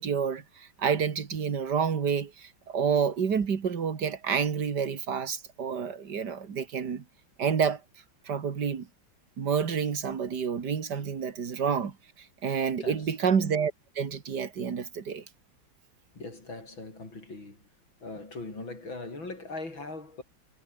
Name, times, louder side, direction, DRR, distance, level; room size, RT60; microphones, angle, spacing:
voice 1, 0.0-7.0 7.4-7.8 8.3-8.9 9.4-12.0 12.4-15.2, right 6 dB, 55° right, 2.6 m, -29 dB
voice 2, 12.8-13.4 16.2-17.6 18.0-20.2, left 2 dB, 75° left, 7.6 m, -40 dB
omnidirectional pair, 2.1 m